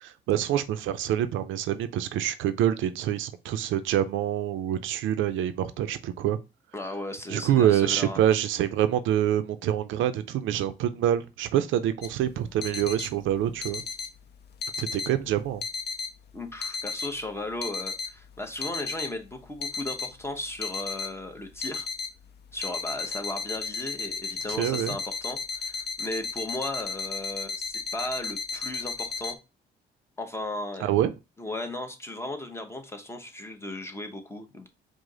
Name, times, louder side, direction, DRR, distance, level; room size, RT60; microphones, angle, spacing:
voice 1, 0.0-6.4 7.3-13.8 14.8-15.6 24.6-25.0 30.8-31.1, right 11 dB, 80° right, 0.4 m, -26 dB
voice 2, 6.7-8.2 16.3-21.9 22.5-29.4 30.2-30.9 31.4-34.7, left 1 dB, 15° left, 0.8 m, -36 dB
sound 1, 12.0-29.3, left 5 dB, 55° left, 0.5 m, -35 dB
4.8 x 2.0 x 3.8 m
cardioid pair, 90°, 20 cm